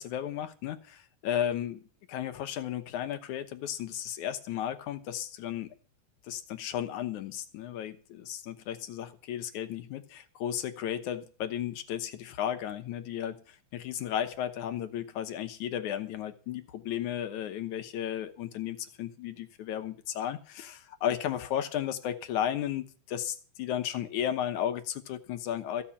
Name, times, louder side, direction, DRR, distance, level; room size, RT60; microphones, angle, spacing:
voice 1, 0.0-1.8 2.1-5.7 6.2-25.8, left 10 dB, 75° left, 9 dB, 2.3 m, -34 dB
15.0 x 6.7 x 8.5 m, 0.40 s
omnidirectional pair, 3.7 m